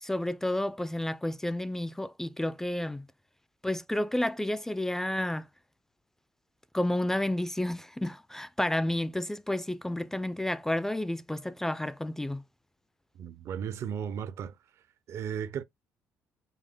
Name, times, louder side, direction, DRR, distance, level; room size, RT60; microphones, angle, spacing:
voice 1, 0.0-3.1 3.6-5.5 6.7-12.4, left 1 dB, 10° left, 0.3 m, -31 dB
voice 2, 13.2-14.6 15.1-15.6, right 8 dB, 60° right, 0.5 m, -35 dB
5.5 x 2.2 x 3.5 m
cardioid pair, 100°, 5 cm